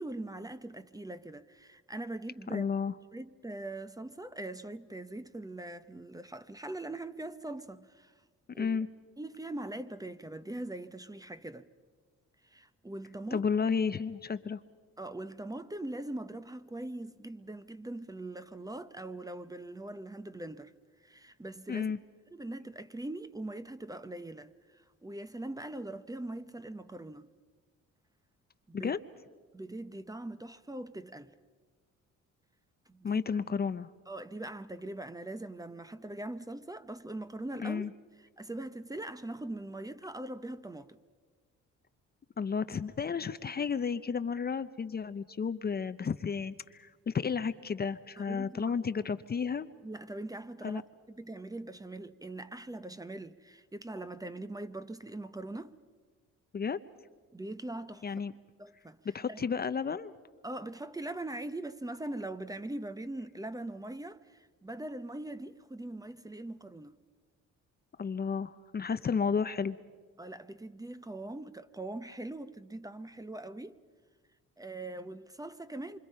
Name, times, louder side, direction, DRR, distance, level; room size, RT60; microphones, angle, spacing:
voice 1, 0.0-2.7 3.1-8.1 8.5-8.8 9.2-11.7 12.4-13.5 15.0-20.7 21.0-21.9 22.3-27.3 28.7-28.9 29.5-31.3 32.9-33.2 34.1-37.9 38.2-41.0 48.2-48.8 49.8-50.8 51.1-55.7 57.3-58.1 58.6-59.0 59.3-59.4 60.4-67.0 70.2-73.8 74.6-76.0, right 2 dB, 10° right, 0.8 m, -41 dB
voice 2, 2.5-3.0 8.6-8.9 13.3-14.6 21.7-22.0 28.7-29.0 33.0-33.9 37.6-37.9 42.4-49.7 50.6-50.8 56.5-56.8 58.0-58.3 59.1-60.1 68.0-69.8, left 6 dB, 30° left, 0.7 m, -32 dB
27.0 x 25.0 x 5.5 m
cardioid pair, 90°, 30 cm